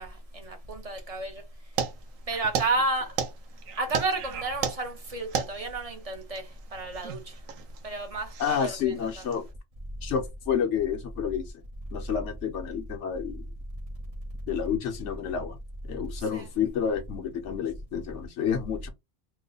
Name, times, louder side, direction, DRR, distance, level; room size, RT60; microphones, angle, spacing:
voice 1, 0.0-1.4 2.3-3.1 3.8-6.4 6.7-7.2 7.8-9.2 16.3-16.5, right 3 dB, 35° right, 0.7 m, -31 dB
sound 1, 1.8-9.5, right 7 dB, 80° right, 1.0 m, -35 dB
voice 2, 8.4-9.4 10.0-11.4 11.9-13.5 14.5-15.6 15.9-18.9, left 8 dB, 65° left, 0.9 m, -29 dB
3.0 x 2.1 x 3.8 m
omnidirectional pair, 1.4 m